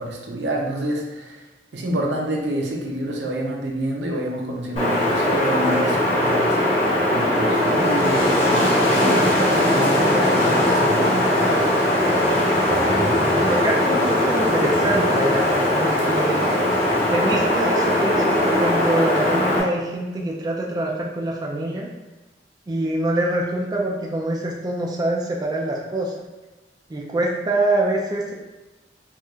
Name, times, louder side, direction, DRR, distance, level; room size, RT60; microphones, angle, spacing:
voice 1, 0.0-1.4 1.7-11.6, right 1 dB, 75° right, 0 dB, 0.6 m, -28 dB
Wind, 4.8-19.6, left 1 dB, 40° left, 1.1 m, -19 dB
voice 2, 13.5-16.5 17.1-21.9 22.7-26.1 26.9-28.3, right 1 dB, 25° right, -2 dB, 0.3 m, -25 dB
4.4 x 2.4 x 2.3 m, 1.1 s
head